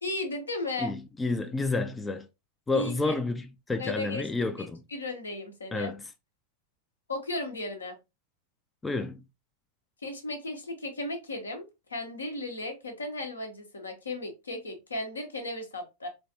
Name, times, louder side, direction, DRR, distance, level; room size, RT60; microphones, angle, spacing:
voice 1, 0.0-0.9 2.7-3.1 3.8-4.2 4.6-5.9 7.1-8.0 10.0-11.6 11.9-16.1, left 2 dB, 75° left, 0.8 m, -35 dB
voice 2, 0.8-2.3 2.7-4.8 5.7-6.0 8.8-9.2, left 3 dB, 10° left, 0.3 m, -30 dB
3.2 x 2.4 x 2.7 m
figure-of-eight pair, 90°, 0 cm